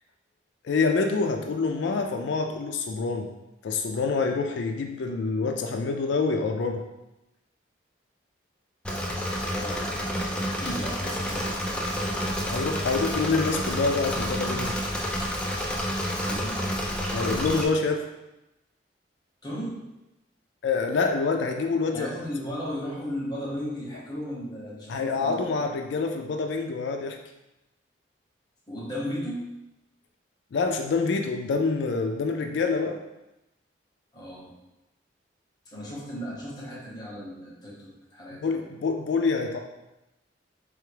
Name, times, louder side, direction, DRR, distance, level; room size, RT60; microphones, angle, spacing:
voice 1, 0.6-3.3 3.6-6.8 12.5-14.7 17.1-18.1 20.6-22.1 24.9-27.2 30.5-33.0 38.4-39.6, left 4 dB, 70° left, 4 dB, 0.4 m, -26 dB
Engine / Mechanisms, 8.8-17.6, equal, 5° left, 0.4 m, -29 dB
voice 2, 9.5-9.9 10.3-12.2 16.2-16.7 19.4-19.8 21.9-25.6 28.7-29.5 34.1-34.5 35.7-38.6, equal, 20° left, -5 dB, 1.0 m, -36 dB
3.4 x 3.4 x 3.3 m, 0.95 s
head